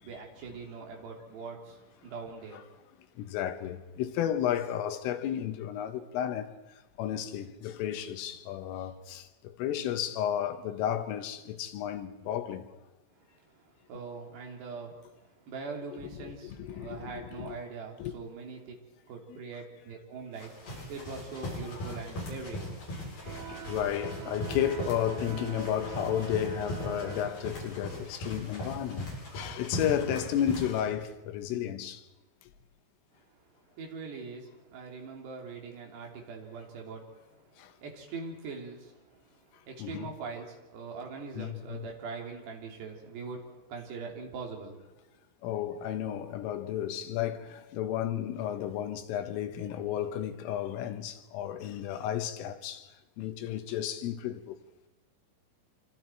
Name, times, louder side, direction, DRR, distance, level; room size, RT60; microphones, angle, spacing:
voice 1, 0.0-2.6 13.9-14.9 15.5-18.7 19.1-22.6 33.8-37.5 37.8-39.2 39.6-44.8, right 4 dB, 60° right, 5.3 m, -42 dB
voice 2, 3.2-6.6 7.0-12.8 15.9-17.5 18.0-18.1 19.3-19.4 21.7-22.0 23.3-32.0 37.6-37.7 39.8-40.1 41.3-41.9 45.4-52.9 53.2-54.6, left 10 dB, 90° left, 3.9 m, -33 dB
sound 1, 20.3-30.9, left 1 dB, 50° left, 9.5 m, -39 dB
sound 2, 23.2-28.1, right 6 dB, 85° right, 5.5 m, -43 dB
26.5 x 26.0 x 4.6 m
omnidirectional pair, 5.7 m